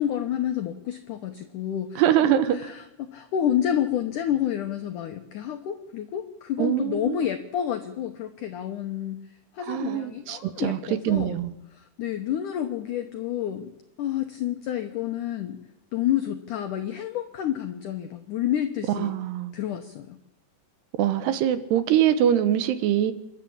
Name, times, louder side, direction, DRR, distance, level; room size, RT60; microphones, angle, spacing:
voice 1, 0.0-2.3 2.5-9.2 9.5-11.4 11.7-13.7 14.0-15.6 15.9-19.1 19.5-20.2, left 10 dB, 80° left, 6 dB, 1.8 m, -29 dB
voice 2, 2.0-2.6 6.6-7.3 9.7-10.8 11.1-11.5 19.0-19.5 21.0-23.1, right 10 dB, 75° right, 12 dB, 3.0 m, -23 dB
27.5 x 11.5 x 8.6 m, 0.89 s
omnidirectional pair, 5.0 m